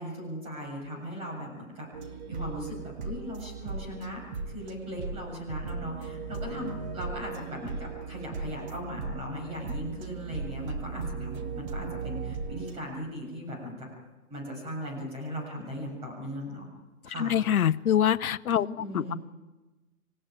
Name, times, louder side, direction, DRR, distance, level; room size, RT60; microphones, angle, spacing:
voice 1, 0.0-1.9 2.3-13.9 14.3-16.7 17.1-17.4 18.6-19.2, equal, 15° right, -1 dB, 7.1 m, -38 dB
sound 1, 1.9-12.8, right 4 dB, 30° right, 1.9 m, -37 dB
voice 2, 17.2-18.7 18.9-19.1, left 10 dB, 70° left, 10 dB, 0.8 m, -24 dB
26.5 x 15.5 x 9.2 m, 1.2 s
hypercardioid pair, 160°, 44 cm